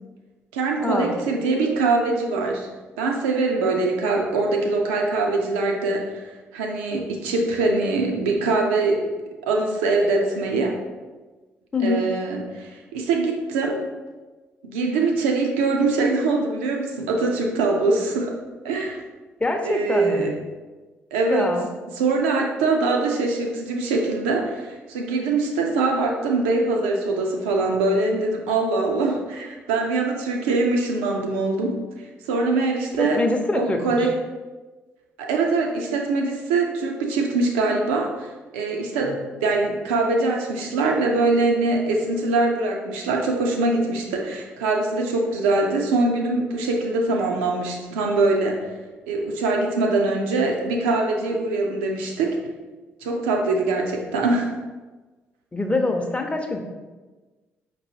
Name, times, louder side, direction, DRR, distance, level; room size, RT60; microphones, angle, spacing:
voice 1, 0.5-2.7 3.0-6.2 6.5-9.1 9.4-10.8 11.8-13.8 14.6-18.4 18.6-19.0 19.6-20.3 21.1-21.5 21.9-33.2 33.5-34.1 35.2-48.6 49.1-52.4 53.0-54.5, right 3 dB, 80° right, 1 dB, 0.5 m, -23 dB
voice 2, 19.4-20.3 21.3-21.7 33.0-34.1 55.5-56.6, left 2 dB, 20° left, 4 dB, 0.7 m, -24 dB
5.2 x 3.0 x 2.8 m, 1.3 s
hypercardioid pair, 45°, 6 cm